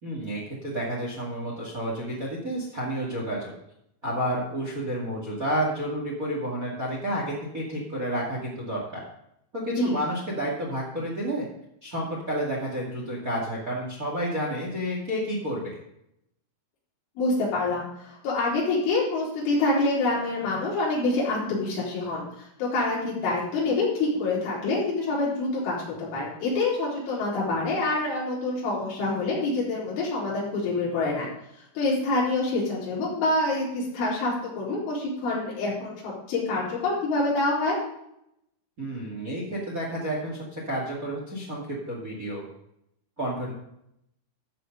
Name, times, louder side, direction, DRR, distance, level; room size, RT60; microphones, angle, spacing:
voice 1, 0.0-3.5 4.0-9.0 9.5-11.4 11.8-15.8 38.8-42.4 43.2-43.5, equal, 50° right, -2 dB, 0.9 m, -30 dB
voice 2, 17.2-31.3 31.8-37.8, left 2 dB, 70° left, -7 dB, 6.5 m, -26 dB
14.0 x 6.7 x 5.4 m, 0.77 s
omnidirectional pair, 5.7 m